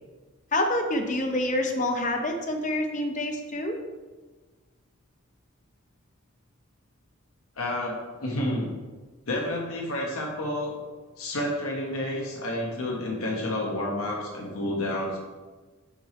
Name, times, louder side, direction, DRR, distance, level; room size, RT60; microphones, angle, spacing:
voice 1, 0.5-3.8, left 1 dB, 35° left, 4 dB, 0.7 m, -27 dB
voice 2, 7.6-8.7 9.3-10.7 11.2-15.2, left 1 dB, 80° left, -2 dB, 1.2 m, -30 dB
8.9 x 3.2 x 4.3 m, 1.3 s
head